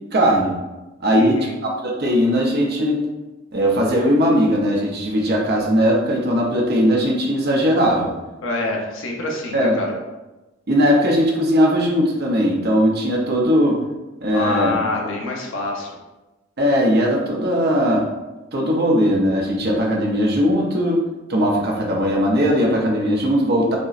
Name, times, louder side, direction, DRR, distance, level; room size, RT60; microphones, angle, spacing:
voice 1, 0.1-0.6 1.0-3.0 3.5-8.1 9.5-9.8 10.7-13.8 14.2-14.8 16.6-18.0 18.5-21.0 21.3-23.8, equal, 50° right, -1 dB, 0.7 m, -19 dB
voice 2, 1.1-1.5 8.4-9.9 14.3-15.9, left 2 dB, 75° left, -1 dB, 0.7 m, -26 dB
5.1 x 2.0 x 2.5 m, 1.1 s
head